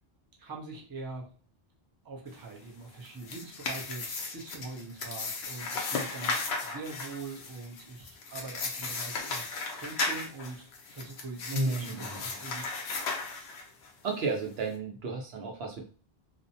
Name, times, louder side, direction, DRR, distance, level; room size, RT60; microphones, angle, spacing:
voice 1, 0.4-1.3 2.0-9.5 9.7-12.6 13.6-13.7, right 3 dB, 25° right, -1 dB, 0.5 m, -43 dB
sound 1, 3.0-13.9, left 3 dB, 90° left, 0.9 m, -36 dB
voice 2, 11.5-12.4 14.0-15.8, right 3 dB, 80° right, 1 dB, 0.9 m, -33 dB
2.5 x 2.0 x 2.7 m, 0.39 s
omnidirectional pair, 1.0 m